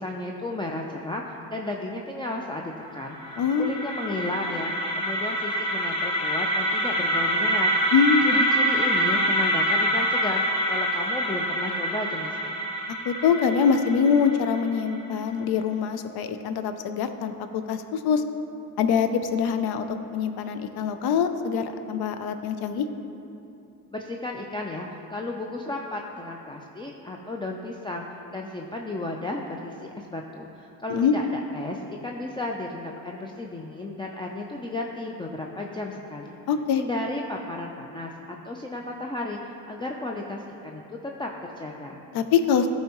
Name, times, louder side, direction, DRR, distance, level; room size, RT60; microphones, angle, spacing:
voice 1, 0.0-7.7 8.2-10.4 10.7-12.6 23.9-28.1 28.3-36.4 36.7-42.0, left 2 dB, 10° left, 0 dB, 0.5 m, -34 dB
sound 1, 2.9-14.9, right 1 dB, 45° left, 1.5 m, -26 dB
voice 2, 3.4-3.7 7.9-8.5 13.0-18.2 18.8-22.9 30.9-31.1 36.5-36.8 42.1-42.7, left 6 dB, 70° left, 9 dB, 0.6 m, -24 dB
12.0 x 4.2 x 3.0 m, 2.8 s
supercardioid pair, 70°, 39 cm